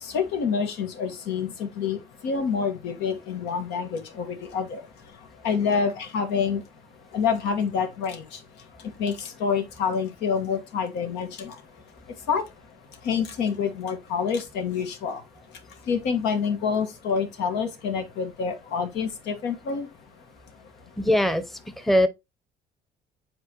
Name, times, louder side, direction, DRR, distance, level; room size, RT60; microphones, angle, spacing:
voice 1, 0.0-4.8 5.4-6.6 7.1-8.4 9.0-11.5 12.3-12.4 13.0-15.2 15.9-19.9, left 6 dB, 90° left, 1.5 m, -27 dB
voice 2, 21.0-22.1, left 1 dB, ahead, 0.7 m, -22 dB
7.4 x 4.4 x 3.0 m
cardioid pair, 110°, 17 cm